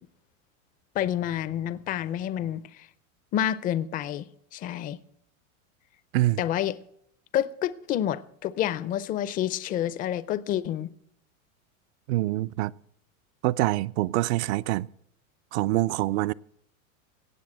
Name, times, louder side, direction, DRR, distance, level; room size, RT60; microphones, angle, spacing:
voice 1, 0.9-2.9 3.3-4.2 4.5-5.0 6.4-6.8 7.3-10.9, left 11 dB, 20° left, 0.5 m, -28 dB
voice 2, 12.1-12.7 13.4-14.9 15.5-16.3, right 17 dB, 55° right, 0.5 m, -25 dB
17.5 x 6.7 x 8.8 m
supercardioid pair, 135°, 41 cm